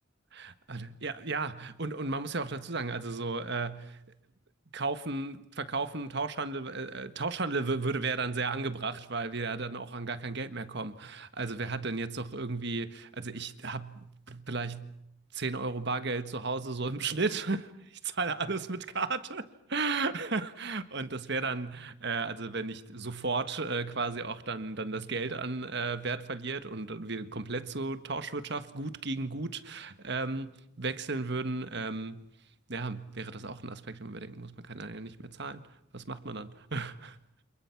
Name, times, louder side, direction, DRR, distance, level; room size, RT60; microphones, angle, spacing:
voice 1, 0.3-4.0 4.7-15.0 15.3-32.2 32.7-37.1, right 3 dB, 55° right, 1.5 m, -34 dB
29.5 x 27.5 x 6.0 m
head